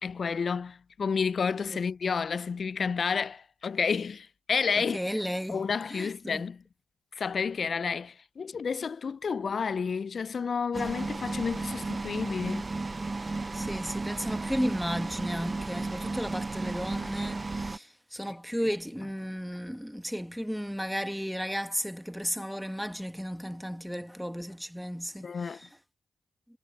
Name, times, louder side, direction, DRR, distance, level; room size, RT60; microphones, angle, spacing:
voice 1, 0.0-5.0 5.5-6.6 7.1-12.7 25.2-25.6, left 5 dB, 55° left, 0.4 m, -30 dB
voice 2, 4.8-5.6 5.9-6.4 13.5-25.7, equal, ahead, 1.4 m, -34 dB
sound 1, 10.7-17.8, right 3 dB, 35° right, 0.7 m, -34 dB
supercardioid pair, 40°, 0 cm